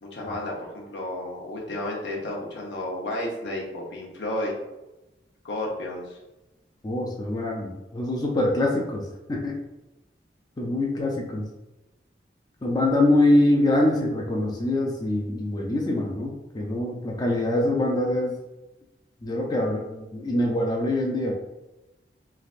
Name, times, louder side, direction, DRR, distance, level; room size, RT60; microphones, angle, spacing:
voice 1, 0.0-4.5 5.4-6.2, left 1 dB, 85° left, -3 dB, 0.8 m, -32 dB
voice 2, 6.8-9.6 10.6-11.5 12.6-18.4 19.2-21.3, left 1 dB, 25° left, -1 dB, 0.4 m, -24 dB
3.2 x 2.5 x 2.4 m, 0.99 s
head